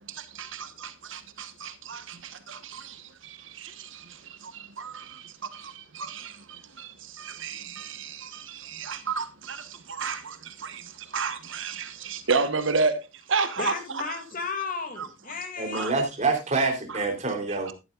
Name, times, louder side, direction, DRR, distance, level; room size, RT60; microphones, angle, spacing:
voice 1, 0.0-14.2 15.0-15.1 15.7-15.9 16.9-17.0 17.5-17.7, right 4 dB, 65° right, 1.2 m, -32 dB
voice 2, 13.6-15.9, left 4 dB, 40° left, 2.5 m, -34 dB
voice 3, 15.6-17.7, right 3 dB, 35° right, 3.4 m, -26 dB
14.0 x 11.0 x 2.4 m
head